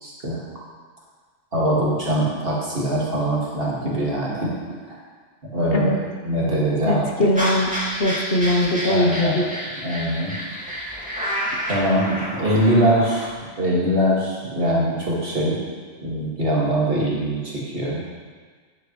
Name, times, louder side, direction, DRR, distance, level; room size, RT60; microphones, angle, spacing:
voice 1, 0.0-0.4 1.5-4.5 4.9-5.0 5.5-6.0 6.2-7.1 8.8-9.4 9.8-10.3 11.7-13.3 13.6-15.6 16.0-18.0, right 1 dB, 50° right, -6 dB, 2.2 m, -22 dB
voice 2, 6.9-7.7 8.0-9.4, left 1 dB, 55° left, 0 dB, 1.1 m, -21 dB
sound 1, 7.4-13.3, equal, 5° right, 2.2 m, -29 dB
10.0 x 8.7 x 3.1 m, 1.6 s
omnidirectional pair, 1.3 m